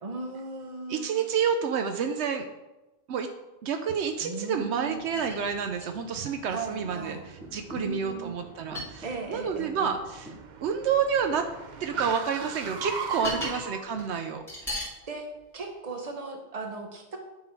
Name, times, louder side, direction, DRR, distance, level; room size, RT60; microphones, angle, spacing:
voice 1, 0.0-1.3 4.2-5.2 6.5-7.2 7.7-8.4 9.0-9.9 13.3-13.6 15.1-15.3 15.5-17.2, right 3 dB, 35° right, 3 dB, 1.0 m, -37 dB
voice 2, 0.9-2.4 3.1-3.3 3.6-7.2 7.5-10.3 10.6-11.5 11.8-14.4, right 6 dB, 75° right, 6 dB, 0.9 m, -29 dB
sound 1, 4.8-4.9 5.2-6.3 6.8-7.0 7.4-7.9 8.7-9.4 10.2-10.4 11.6-12.1 12.4-13.7 13.9-14.1 14.5-14.9 15.6-15.7, left 1 dB, ahead, 2.3 m, -38 dB
Car, 4.9-13.8, right 6 dB, 50° right, 0.6 m, -40 dB
9.7 x 3.8 x 4.7 m, 1.0 s
omnidirectional pair, 1.2 m